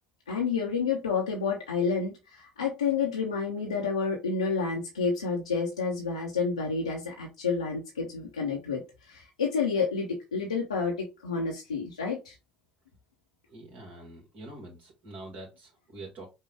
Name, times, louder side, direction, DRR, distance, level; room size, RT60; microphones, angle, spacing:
voice 1, 0.3-12.3, left 5 dB, 85° left, -2 dB, 0.6 m, -29 dB
voice 2, 13.5-16.3, right 2 dB, 50° right, -1 dB, 1.4 m, -45 dB
5.4 x 2.2 x 3.4 m, 0.26 s
figure-of-eight pair, 55°, 3 cm